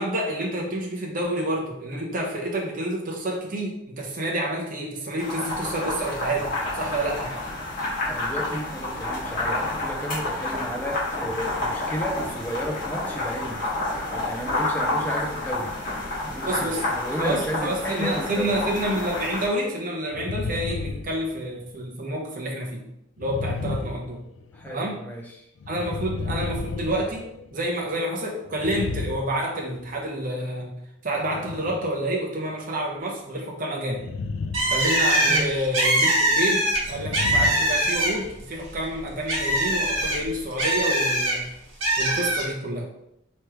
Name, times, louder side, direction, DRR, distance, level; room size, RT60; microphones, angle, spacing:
voice 1, 0.0-7.3 16.4-16.8 17.2-22.9 23.2-24.2 24.7-25.0 25.7-30.7 31.0-34.1 34.7-41.5 42.0-42.9, right 1 dB, 40° right, -1 dB, 0.9 m, -28 dB
sound 1, 5.2-19.4, left 2 dB, 40° left, 1.7 m, -29 dB
voice 2, 8.1-13.6 14.1-15.7 16.2-18.5 24.5-25.4 35.3-35.5, equal, 10° left, 0 dB, 0.6 m, -33 dB
sound 2, 20.1-21.7 23.2-24.7 25.6-27.7 28.5-30.0 31.2-31.9 33.9-34.8 35.1-35.4 36.8-38.4, left 4 dB, 70° left, 0.3 m, -33 dB
Bird, 34.5-38.4 38.7-41.4 41.8-42.5, right 1 dB, 80° right, 1.6 m, -22 dB
4.8 x 3.2 x 3.1 m, 0.81 s
head